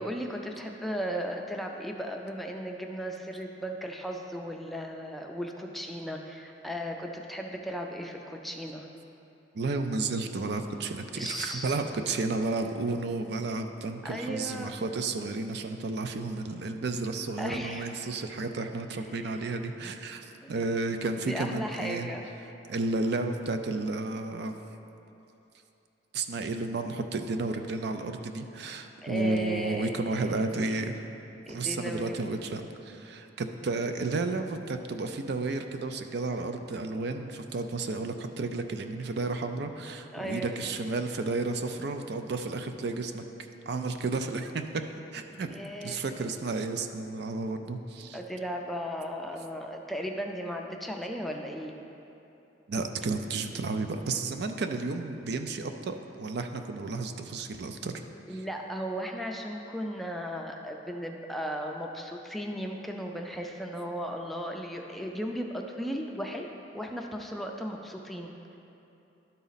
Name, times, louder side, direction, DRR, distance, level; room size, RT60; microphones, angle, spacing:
voice 1, 0.0-8.9 11.1-11.8 14.0-14.8 17.4-17.9 19.1-19.4 20.4-20.5 21.3-22.3 29.0-30.2 30.7-30.8 31.5-32.4 40.1-40.6 45.5-46.1 48.1-51.7 58.3-68.3, equal, ahead, 1 dB, 0.4 m, -36 dB
voice 2, 9.5-22.1 22.7-24.5 26.1-31.0 31.5-43.2 43.7-44.8 45.1-45.5 45.8-48.2 52.7-57.9 58.3-58.4, right 3 dB, 60° right, 7 dB, 0.4 m, -32 dB
12.0 x 4.1 x 4.0 m, 2.9 s
head